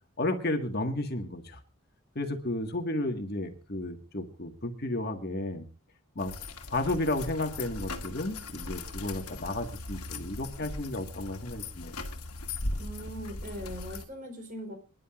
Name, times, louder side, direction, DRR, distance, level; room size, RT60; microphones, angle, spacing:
voice 1, 0.2-1.6 2.1-5.6 6.1-6.3 6.7-12.0, left 1 dB, 45° left, 5 dB, 1.7 m, -33 dB
sound 1, 6.2-14.0, left 2 dB, 85° left, 2.0 m, -39 dB
voice 2, 12.8-14.8, equal, 35° right, 5 dB, 4.1 m, -40 dB
27.0 x 11.0 x 2.5 m, 0.31 s
head